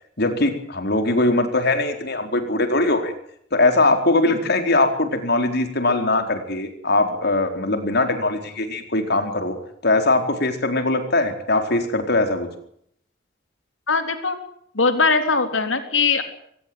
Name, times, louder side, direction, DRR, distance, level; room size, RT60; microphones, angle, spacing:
voice 1, 0.2-3.1 3.5-9.6 9.8-12.5, left 2 dB, 60° left, 6 dB, 4.4 m, -21 dB
voice 2, 13.9-14.4 14.7-16.2, left 4 dB, 80° left, 7 dB, 3.8 m, -20 dB
23.5 x 19.0 x 7.9 m, 0.69 s
head